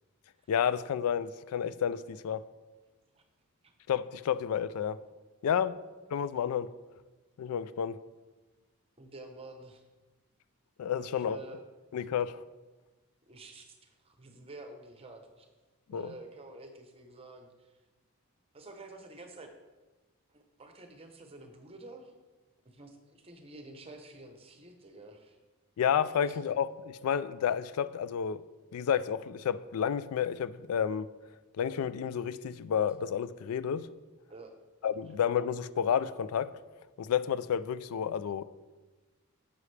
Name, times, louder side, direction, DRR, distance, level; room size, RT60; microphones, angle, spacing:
voice 1, 0.5-2.5 3.9-5.0 5.4-5.8 6.1-6.7 7.4-8.0 10.8-11.4 11.9-12.4 15.9-16.1 25.8-28.4 28.7-31.1 31.6-33.9 34.8-36.5 37.0-38.4, left 8 dB, 80° left, 15 dB, 0.3 m, -30 dB
voice 2, 9.0-9.8 11.0-11.6 13.3-15.5 15.9-17.8 18.5-19.5 20.3-22.1 22.6-25.4 26.2-26.4 34.3-34.6, right 2 dB, 25° right, 5 dB, 0.8 m, -49 dB
9.7 x 6.9 x 3.3 m, 1.2 s
head